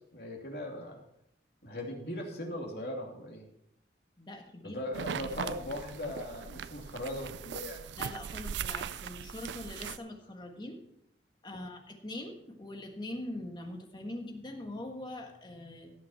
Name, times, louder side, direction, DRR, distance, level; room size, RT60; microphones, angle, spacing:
voice 1, 0.1-1.0 1.6-3.5 4.6-7.8, left 1 dB, 65° left, -1 dB, 2.9 m, -39 dB
voice 2, 4.2-4.8 5.2-5.3 8.0-10.8 11.4-15.9, left 1 dB, 25° left, 3 dB, 1.5 m, -42 dB
sound 1, 4.9-10.0, right 7 dB, 85° right, 0.4 m, -39 dB
17.5 x 6.4 x 4.4 m, 0.74 s
head